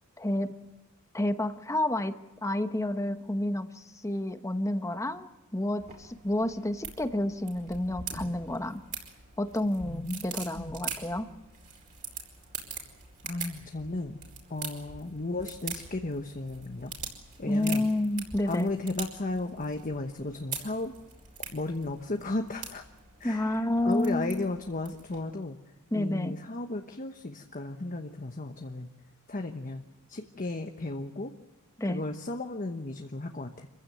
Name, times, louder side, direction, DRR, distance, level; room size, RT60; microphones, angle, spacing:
voice 1, 0.2-0.5 1.1-8.8 9.4-11.3 17.5-18.7 23.2-24.5 25.9-26.4 31.8-32.0, left 1 dB, 15° left, 9 dB, 1.0 m, -30 dB
sound 1, 5.8-25.2, right 6 dB, 35° right, 4.8 m, -43 dB
voice 2, 9.8-10.2 10.6-10.7 13.2-14.2 14.5-16.9 17.4-17.8 18.5-21.0 21.5-22.8 23.2-25.6 25.9-28.9 29.3-29.8 30.1-31.3 31.9-33.7, left 2 dB, 35° left, 5 dB, 1.1 m, -34 dB
26.5 x 15.5 x 9.2 m, 1.0 s
head